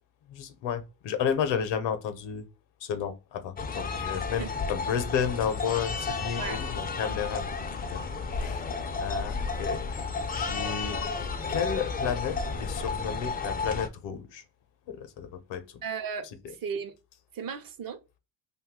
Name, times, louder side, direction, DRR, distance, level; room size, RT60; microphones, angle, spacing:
voice 1, 0.3-2.4 2.8-7.5 7.9-8.0 8.4-8.7 9.0-10.1 10.3-11.0 11.5-14.4 14.9-15.6, left 8 dB, 65° left, 0.7 m, -32 dB
sound 1, 3.6-13.9, left 4 dB, 20° left, 0.4 m, -32 dB
voice 2, 15.8-16.9 17.3-18.0, right 6 dB, 45° right, 0.7 m, -35 dB
2.6 x 2.3 x 3.5 m
supercardioid pair, 75°, 47 cm